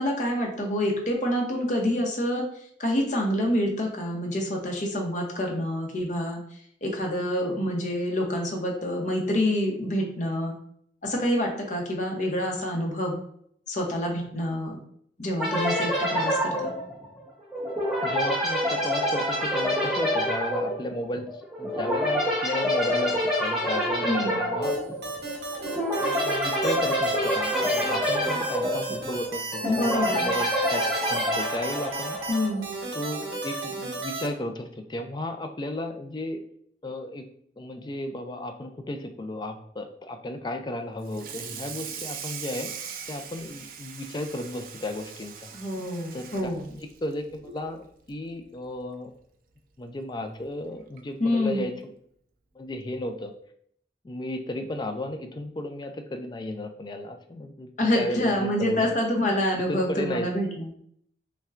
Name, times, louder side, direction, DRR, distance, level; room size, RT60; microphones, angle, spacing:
voice 1, 0.0-2.5 2.8-6.4 6.8-10.5 11.0-13.2 13.7-14.8 15.2-16.7 24.0-24.4 29.6-30.2 32.3-32.6 45.5-46.7 51.2-51.7 57.8-60.7, left 1 dB, 45° left, 1 dB, 0.8 m, -27 dB
sound 1, 15.4-32.6, equal, 5° right, 0.9 m, -27 dB
voice 2, 18.0-21.3 21.6-24.8 26.0-32.2 32.9-36.4 36.8-37.2 37.6-45.5 46.1-46.5 47.0-49.1 49.8-51.7 52.6-53.3 54.0-58.9 59.7-60.3, left 1 dB, 25° left, 6 dB, 0.3 m, -34 dB
sound 2, 24.6-34.3, right 2 dB, 70° right, 0.9 m, -34 dB
Water tap faucet / Sink (filling or washing), 41.0-47.7 48.1-48.3 48.7-48.8 49.2-49.3 50.4-50.5 51.0-51.2, right 7 dB, 50° right, 0.4 m, -41 dB
5.4 x 2.2 x 2.4 m, 0.66 s
head